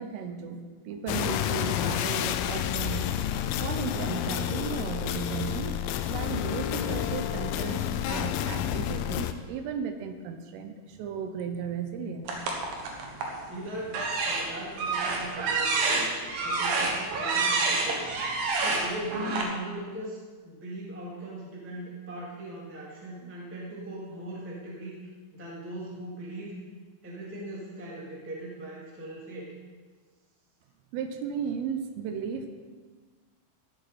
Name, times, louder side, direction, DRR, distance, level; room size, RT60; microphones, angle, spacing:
voice 1, 0.0-3.1 3.6-5.8 6.1-7.8 8.1-12.5 30.9-32.5, right 6 dB, 80° right, 7 dB, 3.4 m, -35 dB
sound 1, 1.1-9.3, left 10 dB, 90° left, 3.4 m, -30 dB
sound 2, 12.3-13.4 13.9-19.4, right 3 dB, 65° right, 2.5 m, -28 dB
voice 2, 13.4-14.0 14.2-16.1 16.4-18.3 18.6-26.5 27.0-29.5, right 1 dB, 5° right, -5 dB, 1.1 m, -39 dB
15.0 x 11.5 x 4.2 m, 1.4 s
omnidirectional pair, 5.9 m